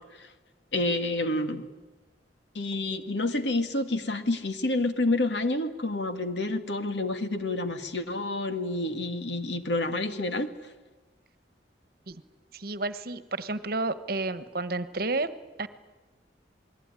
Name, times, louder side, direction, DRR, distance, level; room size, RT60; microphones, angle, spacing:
voice 1, 0.7-1.7 2.6-10.5, left 2 dB, 75° left, 8 dB, 2.0 m, -28 dB
voice 2, 12.5-15.7, right 2 dB, 55° right, 13 dB, 1.3 m, -31 dB
28.0 x 20.5 x 9.9 m, 1.2 s
head